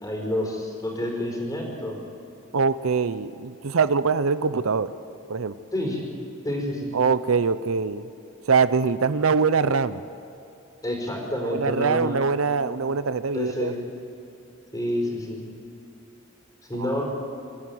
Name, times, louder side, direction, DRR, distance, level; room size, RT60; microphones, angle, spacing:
voice 1, 0.0-2.0 5.7-6.0 6.4-6.9 10.8-12.2 13.3-13.7 14.7-15.4 16.7-17.0, left 1 dB, 20° left, 0 dB, 4.7 m, -28 dB
voice 2, 2.5-4.9 5.3-5.5 6.9-8.1 8.5-10.0 11.4-13.7 16.8-16.9, right 5 dB, 75° right, 14 dB, 0.7 m, -23 dB
25.5 x 13.0 x 9.5 m, 2.8 s
head